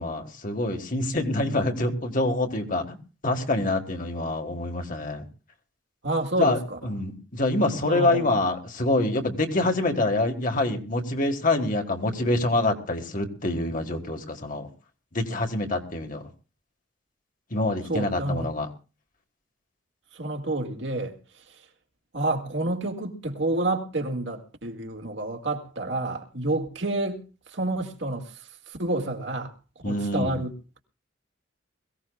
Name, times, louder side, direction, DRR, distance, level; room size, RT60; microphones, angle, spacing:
voice 1, 0.0-3.0 3.2-5.2 6.4-14.7 15.1-16.3 17.5-18.7 29.8-30.4, left 2 dB, 45° left, 1.7 m, -26 dB
voice 2, 6.0-6.8 7.8-8.3 17.9-18.5 20.1-21.2 21.5-21.6 22.1-27.2 27.5-29.5 29.8-30.5, right 2 dB, 65° right, 2.0 m, -29 dB
22.0 x 16.0 x 2.3 m
head